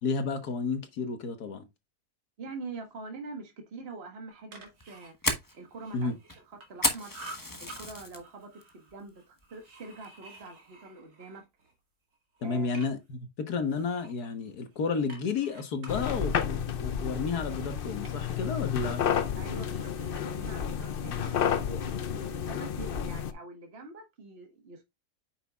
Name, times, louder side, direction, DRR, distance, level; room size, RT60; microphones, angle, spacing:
voice 1, 0.0-1.7 5.9-6.1 12.4-19.0 21.7-21.8, left 4 dB, 80° left, 1.8 m, -32 dB
voice 2, 2.4-5.1 5.5-6.1 6.5-7.1 7.6-11.4 12.4-12.7 19.3-24.8, right 3 dB, 40° right, 1.6 m, -44 dB
sound 1, 4.3-6.8 7.1-7.8 8.2-11.7 12.1-13.2 13.7-18.7 19.0-21.6, right 2 dB, 75° right, 2.5 m, -52 dB
Fire, 4.7-8.2 8.6-9.0 9.4-9.5 10.0-10.4, left 2 dB, 15° left, 1.0 m, -32 dB
sound 2, 15.9-23.3, left 8 dB, 55° left, 0.6 m, -31 dB
8.9 x 6.1 x 2.4 m
omnidirectional pair, 1.6 m